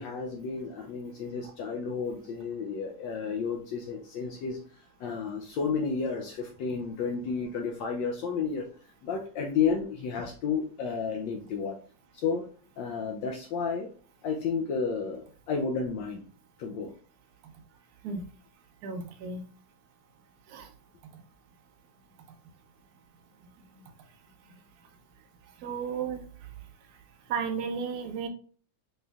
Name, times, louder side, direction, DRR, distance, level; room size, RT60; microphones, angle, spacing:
voice 1, 0.0-4.6 5.0-8.7 9.0-11.8 12.1-12.4 12.8-13.9 14.2-16.3 16.6-16.9, left 5 dB, 75° left, 2 dB, 1.2 m, -31 dB
voice 2, 18.8-19.4 20.5-20.7 25.6-26.2 27.3-28.3, right 6 dB, 65° right, 5 dB, 1.0 m, -33 dB
4.3 x 3.1 x 2.3 m, 0.41 s
omnidirectional pair, 2.1 m